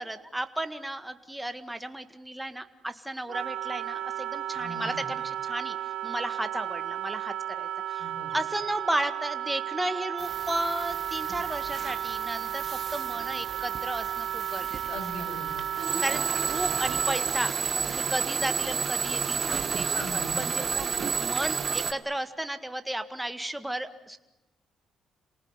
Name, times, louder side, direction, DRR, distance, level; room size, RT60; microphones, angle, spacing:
voice 1, 0.0-15.0 16.0-24.2, right 1 dB, 5° right, 9 dB, 1.9 m, -34 dB
Wind instrument woodwind instrument, 3.3-17.4, right 11 dB, 90° right, 1.0 m, -34 dB
voice 2, 4.5-5.1 8.0-8.4 14.9-15.9 19.9-21.1, left 1 dB, 70° left, 5 dB, 6.8 m, -40 dB
sound 1, 10.2-21.9, right 6 dB, 45° right, 1.6 m, -31 dB
27.5 x 18.5 x 9.7 m, 0.99 s
cardioid pair, 90°, 0 cm